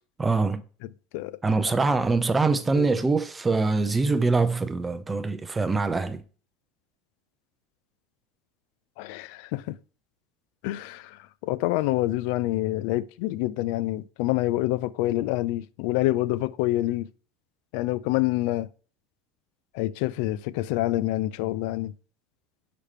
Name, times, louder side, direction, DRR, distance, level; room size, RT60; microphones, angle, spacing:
voice 1, 0.2-0.6 1.4-6.2, right 3 dB, 15° right, 0.5 m, -24 dB
voice 2, 9.0-9.8 10.6-17.1 17.7-18.7 19.7-21.9, left 16 dB, 70° left, 0.4 m, -27 dB
5.1 x 4.9 x 4.1 m
supercardioid pair, 110°, 0 cm